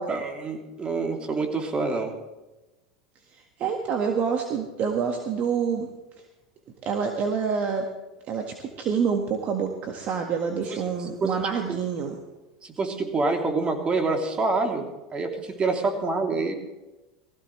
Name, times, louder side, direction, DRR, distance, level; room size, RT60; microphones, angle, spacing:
voice 1, 0.0-2.2 10.7-11.8 12.6-14.8 15.1-16.6, right 3 dB, 30° right, 3 dB, 3.1 m, -27 dB
voice 2, 3.3-5.9 6.8-7.9 8.3-12.2, right 6 dB, 45° right, 3 dB, 1.7 m, -27 dB
20.0 x 15.5 x 3.3 m, 1.1 s
hypercardioid pair, 95°, 4 cm